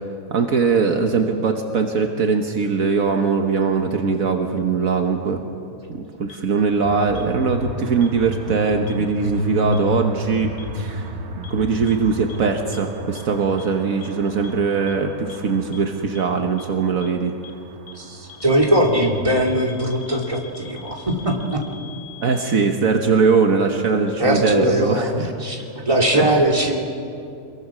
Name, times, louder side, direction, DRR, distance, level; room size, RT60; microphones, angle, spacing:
voice 1, 0.3-5.5 5.9-11.1 11.5-17.3 22.2-25.5 26.1-26.3, right 5 dB, 70° right, 4 dB, 1.6 m, -21 dB
sound 1, 6.3-6.4 7.1-7.2 8.0-8.1 8.9-9.0 9.7-9.8 10.6-10.7 11.4-11.5 11.9-12.0 12.3-12.4 12.7-12.8 13.1-13.2 13.6-13.7 14.0-14.1 14.4-14.5 14.9-15.0 15.3-15.4 15.7-15.8 16.1-16.2 16.6-16.7 17.0-17.1 17.4-17.5 17.9-18.0 18.3-22.7, left 9 dB, 50° left, 1.9 m, -42 dB
sound 2, 6.8-20.7, equal, 50° right, 1.6 m, -32 dB
voice 2, 17.9-21.6 24.2-26.7, right 1 dB, 20° right, -1 dB, 2.9 m, -20 dB
27.0 x 22.0 x 6.2 m, 2.5 s
omnidirectional pair, 1.5 m